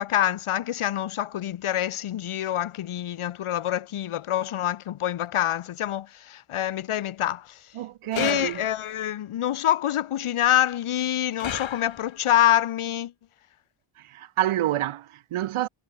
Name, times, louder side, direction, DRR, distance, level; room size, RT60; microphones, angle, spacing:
voice 1, 0.0-7.6 8.1-13.1, left 11 dB, 80° left, 1.2 m, -26 dB
voice 2, 7.7-8.6 14.0-15.7, right 13 dB, 80° right, 0.8 m, -28 dB
sound 1, 8.1-9.0 11.4-12.3, left 8 dB, 65° left, 2.1 m, -35 dB
wide cardioid pair, 100°, 49 cm